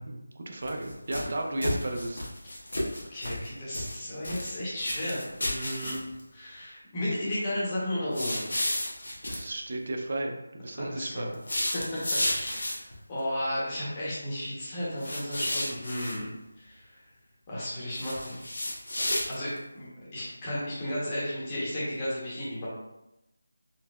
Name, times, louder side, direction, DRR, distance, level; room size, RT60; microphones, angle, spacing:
voice 1, 0.1-2.2 9.2-11.4, right 1 dB, 40° right, 2 dB, 0.4 m, -34 dB
sound 1, 0.6-1.3 1.6-3.5 3.7-4.5 4.8-6.2 8.1-9.4 11.3-12.9 15.0-16.1 17.9-19.6, left 1 dB, 80° left, 0.9 m, -32 dB
voice 2, 3.1-6.0 6.3-8.5 10.7-11.3 11.7-12.0 12.3-16.3 16.6-17.0 17.5-18.4 19.3-22.7, left 1 dB, 15° left, -8 dB, 0.8 m, -34 dB
3.9 x 2.0 x 2.2 m, 0.92 s
figure-of-eight pair, 175°, 0 cm